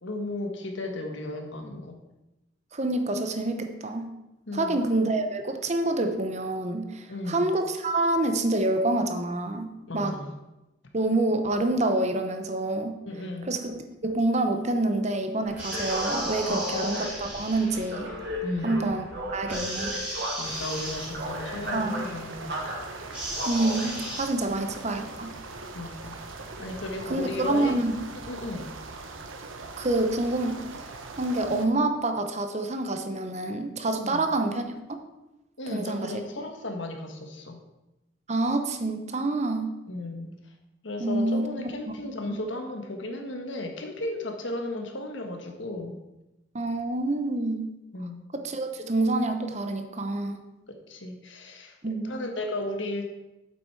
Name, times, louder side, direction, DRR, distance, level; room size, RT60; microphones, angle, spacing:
voice 1, 0.0-2.0 4.5-4.8 7.1-7.4 9.9-10.3 13.0-13.5 16.5-16.8 18.4-18.8 20.4-22.7 24.4-24.7 25.7-26.1 26.6-27.8 28.3-28.6 34.0-34.2 35.6-37.6 39.9-40.5 40.8-45.9 47.9-48.2 50.7-51.8 52.0-53.1, left 2 dB, 70° left, 3 dB, 1.5 m, -35 dB
voice 2, 2.7-4.1 4.5-9.7 9.9-10.2 10.9-12.9 13.5-18.1 18.6-19.0 19.3-20.0 21.7-22.0 23.5-25.3 27.1-27.9 29.8-30.6 31.2-34.6 35.7-36.1 38.3-39.7 41.0-41.9 42.3-42.4 46.5-47.7 48.3-50.4 51.8-52.2, right 2 dB, 35° right, 6 dB, 0.9 m, -27 dB
sound 1, 15.4-27.3, equal, 55° right, 2.0 m, -36 dB
sound 2, 15.6-17.8 19.5-21.1 23.1-24.2, right 1 dB, 10° right, 3.4 m, -35 dB
sound 3, 20.4-31.7, right 3 dB, 85° right, 1.0 m, -41 dB
8.7 x 7.9 x 4.7 m, 0.97 s
head